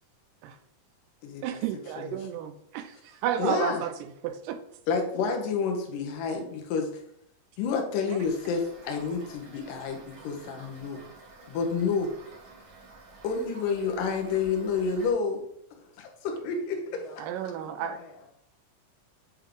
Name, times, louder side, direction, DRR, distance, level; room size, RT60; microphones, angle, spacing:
voice 1, 1.4-4.6 8.1-8.2 17.2-18.0, right 10 dB, 80° right, 9 dB, 2.1 m, -32 dB
voice 2, 3.4-3.8 4.9-6.9 7.6-11.0 11.5-12.1 13.2-15.5 16.0-17.0, left 5 dB, 75° left, 3 dB, 2.5 m, -29 dB
Toilet flush / Fill (with liquid), 8.2-15.1, right 3 dB, 65° right, 0.9 m, -50 dB
voice 3, 16.5-18.3, left 5 dB, 60° left, -1 dB, 2.2 m, -51 dB
7.3 x 3.4 x 3.7 m, 0.71 s
omnidirectional pair, 3.9 m